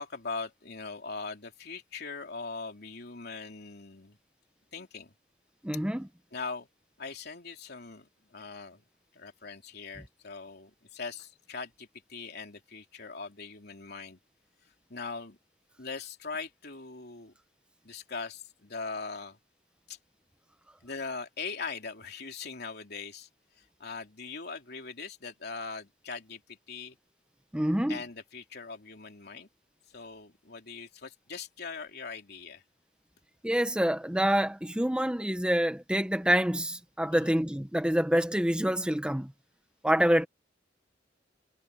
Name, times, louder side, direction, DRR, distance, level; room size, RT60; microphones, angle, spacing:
voice 1, 0.0-4.2 4.7-5.1 6.3-6.7 7.0-8.8 9.1-14.2 14.9-15.4 15.8-17.3 17.8-19.4 19.9-20.0 20.8-23.3 23.6-27.0 27.9-29.5 29.9-32.6 37.1-37.3, left 4 dB, 60° left, 3.3 m, -41 dB
voice 2, 5.6-6.1 27.5-28.0 33.4-39.3 39.8-40.3, equal, 5° right, 0.8 m, -26 dB
head